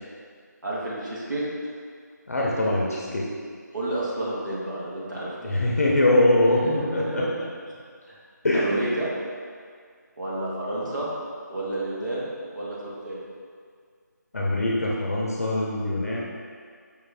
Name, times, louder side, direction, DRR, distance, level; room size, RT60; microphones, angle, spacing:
voice 1, 0.6-1.4 3.7-5.5 6.6-7.3 8.1-8.2 8.5-9.1 10.2-11.1 11.5-13.2, right 1 dB, 90° right, -7 dB, 1.5 m, -30 dB
voice 2, 2.3-3.3 5.4-7.2 8.4-8.7 14.3-16.2, left 1 dB, 50° left, -3 dB, 0.5 m, -23 dB
5.2 x 2.5 x 3.3 m, 2.1 s
figure-of-eight pair, 170°, 10 cm